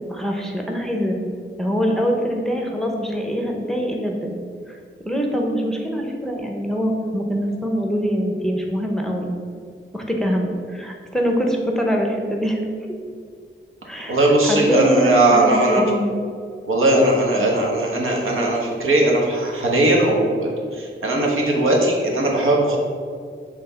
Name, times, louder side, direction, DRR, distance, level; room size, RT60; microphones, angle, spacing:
voice 1, 0.1-1.2 1.6-4.3 4.7-4.8 5.0-9.3 9.9-12.6 13.9-16.2, equal, ahead, 0 dB, 0.7 m, -23 dB
voice 2, 14.1-15.8 16.7-22.8, right 1 dB, 80° right, -1 dB, 1.2 m, -18 dB
5.9 x 3.5 x 5.6 m, 2.1 s
wide cardioid pair, 150°, 21 cm